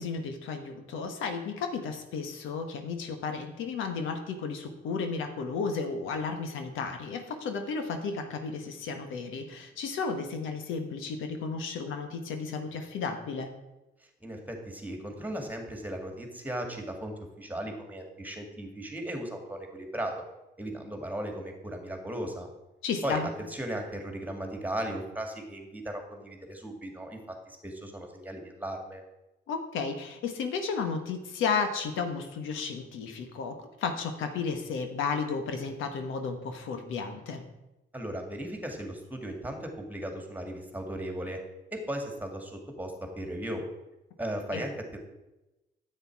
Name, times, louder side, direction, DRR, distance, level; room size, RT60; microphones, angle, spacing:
voice 1, 0.0-13.5 22.8-23.3 29.5-37.4 44.5-44.6, left 5 dB, 85° left, 6 dB, 1.3 m, -33 dB
voice 2, 14.2-20.2 20.6-22.5 23.0-23.2 23.5-27.2 27.5-29.0 37.9-41.4 41.7-43.6 44.2-45.0, right 1 dB, 10° right, 3 dB, 2.1 m, -36 dB
9.8 x 8.1 x 4.7 m, 0.98 s
cardioid pair, 90°, 20 cm